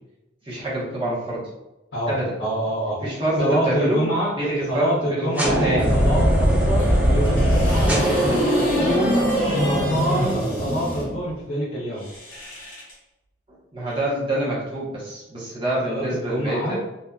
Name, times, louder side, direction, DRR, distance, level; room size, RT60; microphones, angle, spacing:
voice 1, 0.4-1.5 2.1-2.4 3.0-4.0 4.4-6.0 13.7-16.7, right 1 dB, 30° right, -7 dB, 1.0 m, -26 dB
voice 2, 2.4-3.0 3.4-4.3 4.7-12.0 15.8-16.7, equal, 65° left, -8 dB, 0.7 m, -26 dB
sound 1, 5.4-11.3, equal, 10° right, 0.4 m, -20 dB
sound 2, 6.8-11.1 11.9-13.0 13.9-14.0, left 1 dB, 50° left, 1.1 m, -35 dB
2.7 x 2.4 x 2.3 m, 0.96 s
head